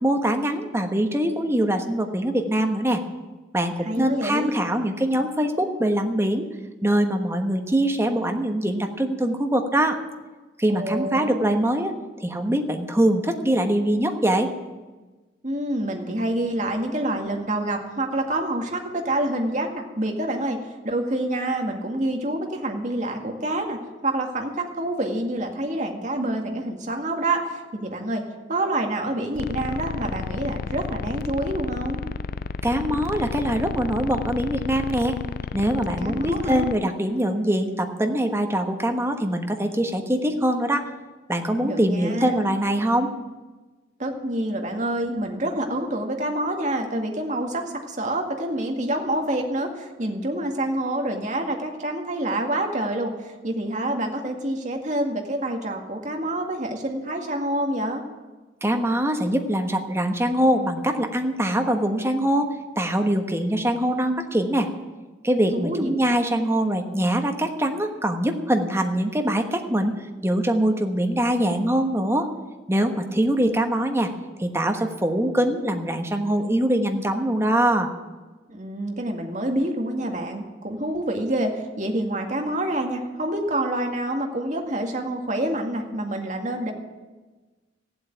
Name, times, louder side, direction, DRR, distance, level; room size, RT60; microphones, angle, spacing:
voice 1, 0.0-3.0 3.5-6.5 6.8-10.0 10.6-11.9 12.2-14.5 32.6-35.2 35.5-40.9 41.3-43.1 58.6-64.7 65.2-70.0 70.2-72.3 72.7-74.1 74.4-77.9, right 1 dB, 15° right, 5 dB, 1.2 m, -23 dB
voice 2, 3.8-4.6 10.7-11.6 15.4-20.6 20.8-23.8 24.0-32.0 36.0-36.7 41.6-42.4 44.0-58.0 65.5-65.9 73.4-73.7 78.5-86.7, right 1 dB, 40° right, 3 dB, 1.9 m, -27 dB
sound 1, 29.4-36.8, left 5 dB, 50° left, 0.4 m, -32 dB
15.5 x 8.0 x 9.1 m, 1.2 s
head